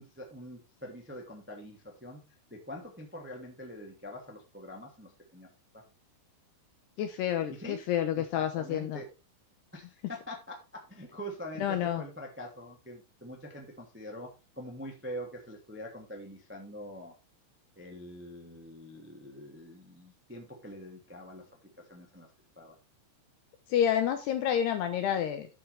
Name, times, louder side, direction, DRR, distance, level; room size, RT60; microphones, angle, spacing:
voice 1, 0.0-5.5 7.5-7.8 8.1-9.1 9.7-10.5 10.9-14.3 14.5-17.1 17.7-21.4 21.8-22.3 22.5-22.7, equal, 15° right, 1 dB, 0.5 m, -44 dB
voice 2, 7.0-9.0 11.6-12.0 23.7-25.5, left 10 dB, 75° left, 7 dB, 2.5 m, -29 dB
12.0 x 7.2 x 3.4 m, 0.28 s
omnidirectional pair, 5.8 m